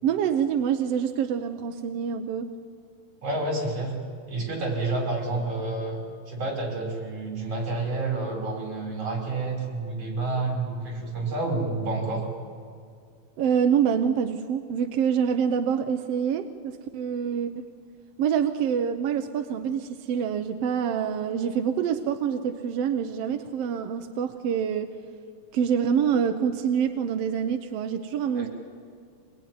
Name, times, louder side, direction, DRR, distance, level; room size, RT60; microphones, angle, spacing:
voice 1, 0.0-2.5 13.4-17.6 18.2-24.9 25.5-28.5, right 7 dB, 65° right, 6 dB, 1.7 m, -26 dB
voice 2, 3.2-4.0 4.3-12.3 28.3-28.5, right 2 dB, 50° right, 0 dB, 6.6 m, -29 dB
25.0 x 21.5 x 9.5 m, 2.2 s
omnidirectional pair, 3.5 m